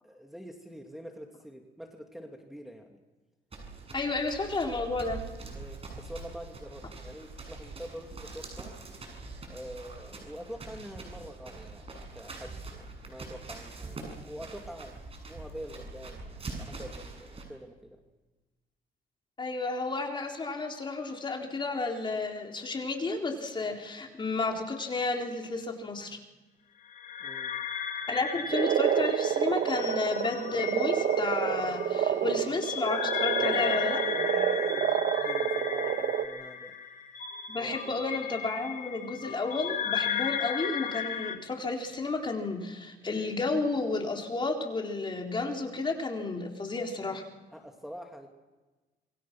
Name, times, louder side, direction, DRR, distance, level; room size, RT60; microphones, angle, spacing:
voice 1, 0.0-3.0 4.0-4.1 5.5-8.8 9.5-15.0 15.2-18.0 27.2-27.6 33.3-36.8 37.6-38.0 47.5-48.3, equal, ahead, 1 dB, 2.7 m, -46 dB
sound 1, 3.5-17.4, right 3 dB, 35° right, 7.5 m, -44 dB
voice 2, 3.9-5.2 19.4-26.2 28.1-34.0 37.5-47.2, left 3 dB, 30° left, 1 dB, 4.1 m, -32 dB
sound 2, 26.9-41.4, left 8 dB, 55° left, 2.3 m, -35 dB
Frog, 28.5-36.3, right 9 dB, 65° right, 1.6 m, -28 dB
27.5 x 22.5 x 6.2 m, 1.2 s
cardioid pair, 110°, 17 cm